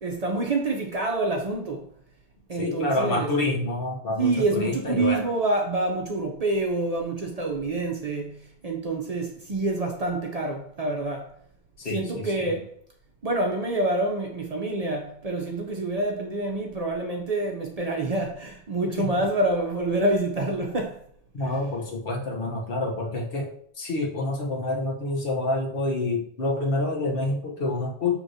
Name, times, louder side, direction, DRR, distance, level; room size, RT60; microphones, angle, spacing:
voice 1, 0.0-1.9 2.5-3.3 4.2-11.3 11.9-12.6 13.2-21.0, right 2 dB, 50° right, 0.5 m, -27 dB
voice 2, 2.6-5.2 11.8-12.5 19.0-19.2 21.3-23.5 23.8-28.2, left 2 dB, 65° left, 1.1 m, -27 dB
6.2 x 2.9 x 2.6 m
omnidirectional pair, 1.0 m